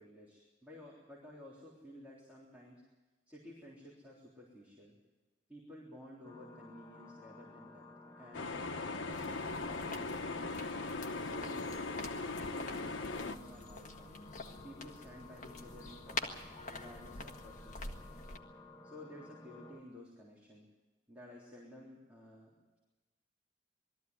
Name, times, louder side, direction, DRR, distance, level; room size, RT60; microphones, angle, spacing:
voice 1, 0.0-2.8 3.3-5.0 5.5-7.9 8.2-8.6 9.0-10.6 11.2-14.2 14.6-18.0 18.8-20.7 21.1-22.8, left 1 dB, 10° right, -7 dB, 3.7 m, -54 dB
sound 1, 6.2-19.8, left 2 dB, 20° left, 1.5 m, -55 dB
sound 2, 8.3-13.4, left 3 dB, 90° left, 1.1 m, -39 dB
sound 3, 9.1-18.4, left 3 dB, 40° left, 1.7 m, -47 dB
21.5 x 14.0 x 9.6 m, 1.2 s
head